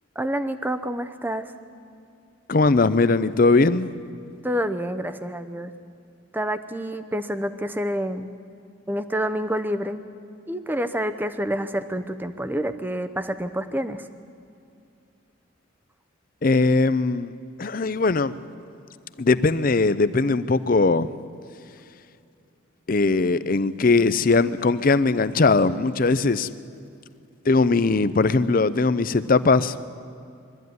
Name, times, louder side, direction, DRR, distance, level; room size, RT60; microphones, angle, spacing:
voice 1, 0.2-1.5 4.4-5.7 6.3-8.3 8.9-10.0 10.5-14.1, equal, 10° right, 0.7 m, -28 dB
voice 2, 2.5-3.9 16.4-17.3 17.6-18.4 19.2-21.1 22.9-26.5 27.5-29.7, left 3 dB, 45° left, 0.5 m, -20 dB
22.0 x 13.5 x 9.4 m
head